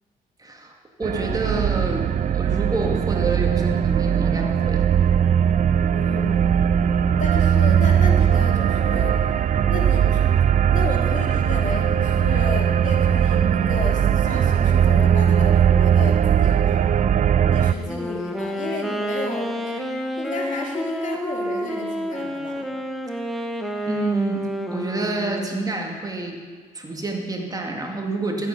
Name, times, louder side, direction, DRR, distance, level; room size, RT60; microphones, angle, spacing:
voice 1, 0.4-0.7 1.0-2.1 2.3-4.9 23.9-26.4 26.7-28.5, right 2 dB, 20° right, 1 dB, 2.3 m, -28 dB
sound 1, 1.0-17.7, right 8 dB, 50° right, 0.5 m, -19 dB
voice 2, 5.9-6.5 7.2-10.3 10.7-16.8 17.5-22.7, left 2 dB, 45° left, 0 dB, 2.7 m, -33 dB
Wind instrument woodwind instrument, 17.8-25.9, equal, ahead, 1.5 m, -29 dB
14.5 x 8.5 x 5.4 m, 1.5 s
supercardioid pair, 60°, 17 cm